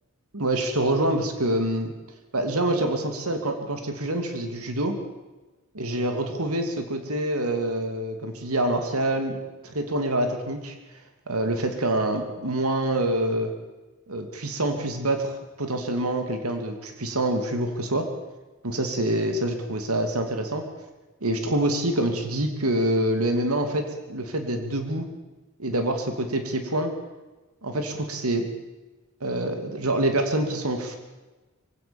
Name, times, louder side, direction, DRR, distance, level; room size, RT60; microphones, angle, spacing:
voice 1, 0.3-1.9 2.3-5.0 5.7-9.4 9.6-10.7 11.3-13.5 14.1-18.1 18.6-20.7 21.2-25.1 25.6-26.9 27.6-28.5 29.2-31.0, right 1 dB, 90° right, 6 dB, 2.7 m, -26 dB
24.0 x 16.5 x 7.1 m, 1.2 s
head